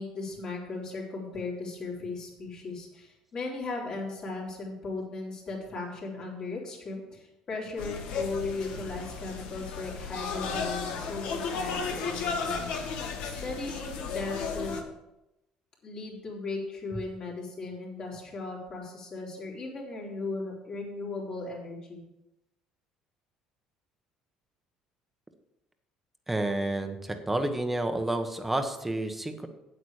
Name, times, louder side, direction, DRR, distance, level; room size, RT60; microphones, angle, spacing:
voice 1, 0.0-12.7 13.2-14.8 15.8-22.0, left 3 dB, 45° left, -3 dB, 3.6 m, -37 dB
sound 1, 7.8-14.8, left 5 dB, 75° left, 1.5 m, -34 dB
voice 2, 26.3-29.5, right 1 dB, 10° right, 6 dB, 1.1 m, -30 dB
8.6 x 8.4 x 4.9 m, 0.94 s
cardioid pair, 115°, 2 cm